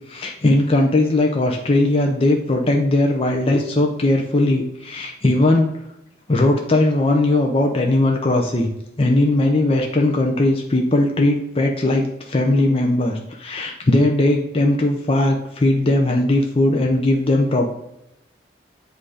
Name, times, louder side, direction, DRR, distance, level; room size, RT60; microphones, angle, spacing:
voice 1, 0.1-5.7 6.3-8.7 9.0-17.7, left 2 dB, 30° left, 1 dB, 0.6 m, -18 dB
7.7 x 2.7 x 4.8 m, 0.85 s
head